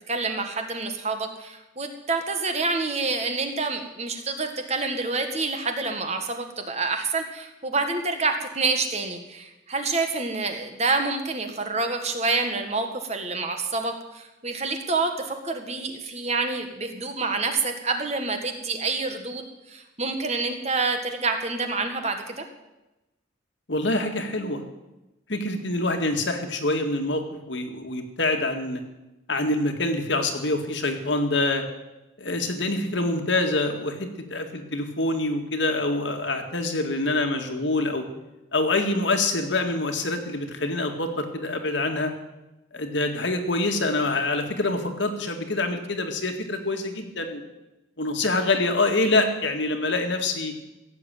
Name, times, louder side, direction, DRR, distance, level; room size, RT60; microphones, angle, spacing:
voice 1, 0.1-19.4 19.7-22.4, right 3 dB, 35° right, 6 dB, 1.6 m, -27 dB
voice 2, 23.7-24.6 25.3-27.2 27.5-28.8 29.3-31.6 32.2-38.0 38.5-42.1 42.7-47.4 48.0-50.5, left 2 dB, 65° left, 5 dB, 1.9 m, -25 dB
16.0 x 7.7 x 9.1 m, 0.98 s
head